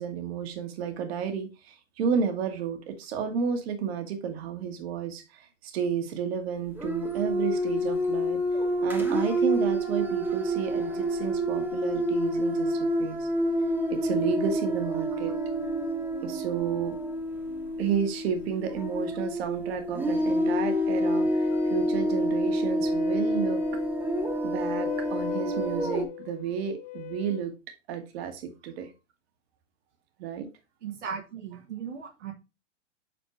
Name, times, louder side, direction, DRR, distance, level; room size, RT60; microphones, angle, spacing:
voice 1, 0.0-8.4 8.8-13.3 13.9-15.3 16.2-17.0 17.8-23.6 24.4-27.5 27.9-28.9 30.2-30.5, right 7 dB, 55° right, 1.6 m, -32 dB
sound 1, 6.8-26.0, equal, 5° right, 1.2 m, -28 dB
Wind instrument woodwind instrument, 20.9-27.5, left 16 dB, 65° left, 1.8 m, -43 dB
voice 2, 30.8-32.3, right 7 dB, 75° right, 1.5 m, -37 dB
7.6 x 4.4 x 3.1 m
hypercardioid pair, 120°, 36 cm